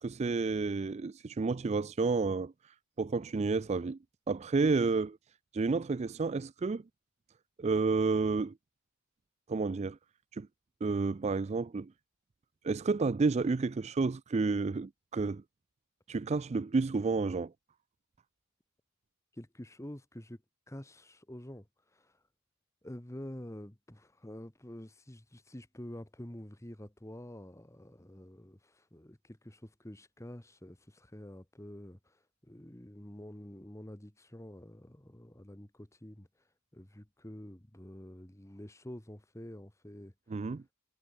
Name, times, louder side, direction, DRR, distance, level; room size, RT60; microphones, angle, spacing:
voice 1, 0.0-4.0 4.3-5.2 5.5-6.8 7.6-8.5 9.5-10.0 10.3-10.5 10.8-11.9 12.6-15.4 16.1-17.5 40.3-40.6, right 4 dB, 30° right, 0.3 m, -30 dB
voice 2, 19.3-20.4 20.7-22.2 22.8-36.3 36.7-40.1, left 1 dB, 15° left, 1.3 m, -48 dB
head